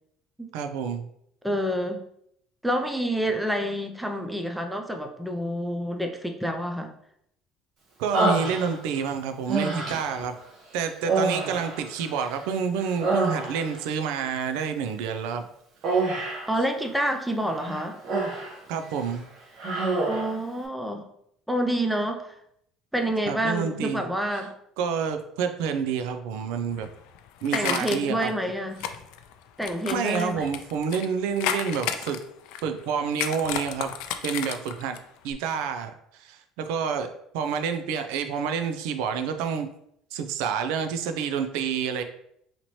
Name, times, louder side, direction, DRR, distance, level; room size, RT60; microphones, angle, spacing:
voice 1, 0.5-1.1 8.0-10.4 10.7-15.5 18.7-19.2 23.3-24.0 24.8-26.9 27.4-28.3 29.9-32.2 32.6-33.9 34.2-35.0 35.2-39.7 40.1-42.0, right 6 dB, 90° right, 7 dB, 0.4 m, -28 dB
voice 2, 1.4-2.0 2.6-6.9 16.5-18.0 20.1-21.1 21.5-22.4 22.9-24.5 27.5-28.8 29.6-30.5, equal, ahead, 4 dB, 0.4 m, -28 dB
Human voice, 8.1-9.0 9.5-10.2 11.0-12.5 12.8-13.8 15.8-16.5 17.5-18.6 18.9-19.1 19.6-20.4, right 3 dB, 50° right, 1.3 m, -27 dB
sound 1, 26.7-28.3 28.8-31.1 31.4-32.8 33.1-35.0 35.3-35.4, left 9 dB, 80° left, 0.3 m, -32 dB
4.1 x 2.9 x 3.1 m, 0.72 s
cardioid pair, 155°, 0 cm